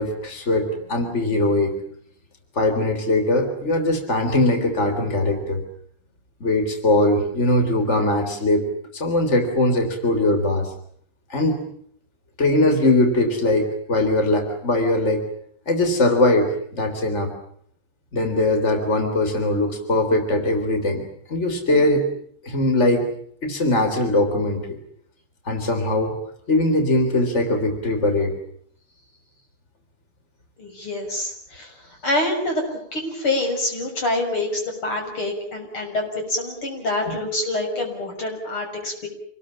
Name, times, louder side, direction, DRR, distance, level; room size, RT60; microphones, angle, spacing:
voice 1, 0.0-1.8 2.6-5.6 6.4-8.7 8.9-10.7 11.3-11.6 12.4-15.2 15.7-17.3 18.1-22.1 22.4-23.1 23.4-24.7 25.5-26.1 26.5-28.3 37.0-37.2, left 2 dB, 30° left, 6 dB, 3.9 m, -21 dB
voice 2, 30.6-31.7 32.0-39.1, left 2 dB, 75° left, 2 dB, 7.4 m, -26 dB
27.0 x 20.5 x 8.7 m, 0.64 s
omnidirectional pair, 2.4 m